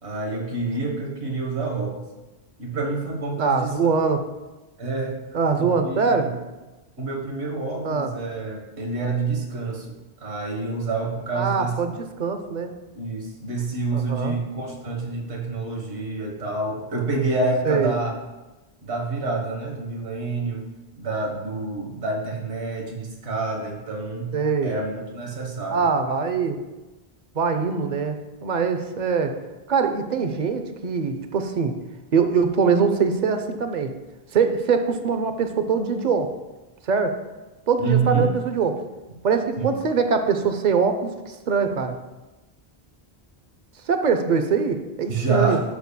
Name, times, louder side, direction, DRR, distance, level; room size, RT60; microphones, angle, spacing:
voice 1, 0.0-2.0 2.6-3.8 4.8-5.2 5.6-6.3 7.0-9.9 10.2-11.8 12.9-18.2 18.8-20.6 21.0-24.4 24.6-26.2 37.8-38.3 39.6-39.8 45.1-45.6, right 3 dB, 80° right, 1 dB, 1.6 m, -27 dB
voice 2, 3.4-4.2 5.3-6.3 7.8-8.1 11.3-12.7 13.9-14.4 17.6-17.9 24.3-24.7 25.7-26.6 27.3-29.4 29.7-31.7 32.1-33.9 34.3-36.3 36.8-37.2 37.7-38.8 39.2-42.0 43.9-45.6, right 5 dB, 50° right, 7 dB, 0.7 m, -23 dB
10.5 x 7.0 x 2.2 m, 1.1 s
omnidirectional pair, 1.1 m